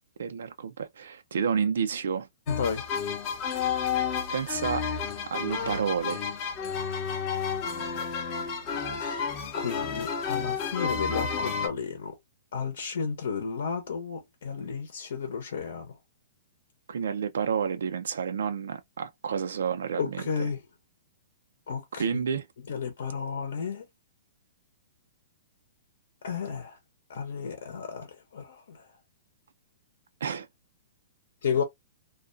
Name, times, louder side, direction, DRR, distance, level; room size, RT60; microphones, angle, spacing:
voice 1, 0.2-2.3 4.3-4.9 5.3-6.2 16.9-20.2 21.9-22.5 30.2-30.5, right 7 dB, 85° right, 0.4 m, -30 dB
voice 2, 2.5-2.9 9.0-12.2 12.5-15.9 20.0-20.6 21.7-22.0 22.7-23.8 26.2-26.8 27.1-28.8 31.4-31.6, left 6 dB, 65° left, 0.8 m, -32 dB
sound 1, 2.5-11.7, left 6 dB, 20° left, 0.5 m, -31 dB
2.4 x 2.2 x 2.5 m
hypercardioid pair, 175°, 0 cm